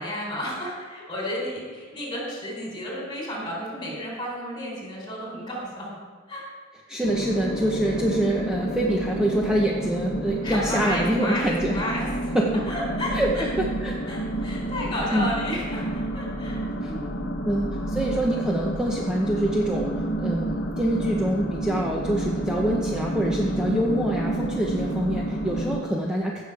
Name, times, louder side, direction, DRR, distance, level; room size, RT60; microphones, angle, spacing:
voice 1, 0.0-5.9 6.3-6.5 6.9-7.3 10.4-12.4 12.7-13.5 14.0-16.6 16.9-17.3, equal, 25° left, -2 dB, 3.7 m, -32 dB
voice 2, 6.9-11.8 12.3-12.6 13.1-13.3 13.6-14.0 15.1-15.3 16.8-16.9 17.5-19.9 20.2-26.4, right 1 dB, 5° right, -3 dB, 0.9 m, -25 dB
sound 1, 7.0-25.8, right 1 dB, 55° left, 1.1 m, -29 dB
16.5 x 6.5 x 4.8 m, 1.5 s
head